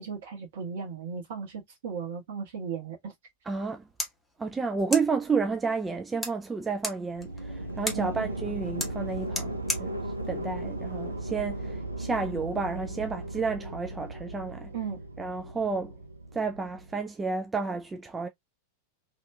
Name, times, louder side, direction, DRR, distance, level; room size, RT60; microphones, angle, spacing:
voice 1, 0.0-3.1 7.9-8.1 14.7-15.0, right 6 dB, 55° right, 1.4 m, -36 dB
voice 2, 3.5-3.9 4.4-14.7 15.2-15.9 16.3-18.3, right 4 dB, 15° right, 0.4 m, -31 dB
sound 1, 3.6-11.6, left 1 dB, 10° left, 1.0 m, -39 dB
sound 2, 7.1-17.0, right 1 dB, 85° right, 0.6 m, -37 dB
3.2 x 2.8 x 2.3 m
figure-of-eight pair, 90°, 0 cm